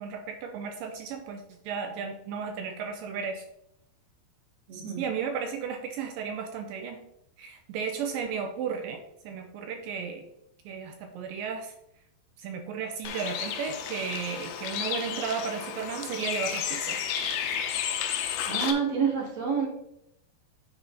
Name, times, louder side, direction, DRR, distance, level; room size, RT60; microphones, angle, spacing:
voice 1, 0.0-3.4 4.7-7.0 7.4-10.2 10.7-11.7 12.4-17.0, right 6 dB, 80° right, 6 dB, 2.0 m, -34 dB
voice 2, 4.7-5.0 18.4-19.7, right 6 dB, 50° right, -2 dB, 2.8 m, -28 dB
Bird, 13.0-18.7, left 8 dB, 90° left, 2.7 m, -32 dB
9.5 x 4.3 x 4.1 m, 0.80 s
omnidirectional pair, 4.6 m